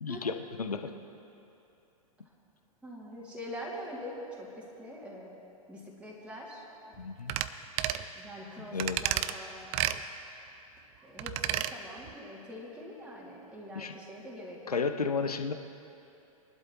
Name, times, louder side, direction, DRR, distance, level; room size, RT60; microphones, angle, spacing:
voice 1, 0.0-0.9 7.0-7.3 8.6-9.0 13.7-14.0 14.7-15.5, left 5 dB, 85° left, 7 dB, 0.7 m, -33 dB
voice 2, 2.8-4.5 4.8-5.4 5.7-6.6 8.2-9.7 11.0-14.8, equal, 5° right, -6 dB, 2.5 m, -44 dB
sound 1, 7.3-7.5 7.8-8.0 8.8-9.3 9.7-10.0 11.2-11.7 12.1-12.2, right 13 dB, 35° right, 0.5 m, -30 dB
22.0 x 12.0 x 3.0 m, 2.8 s
figure-of-eight pair, 100°, 19 cm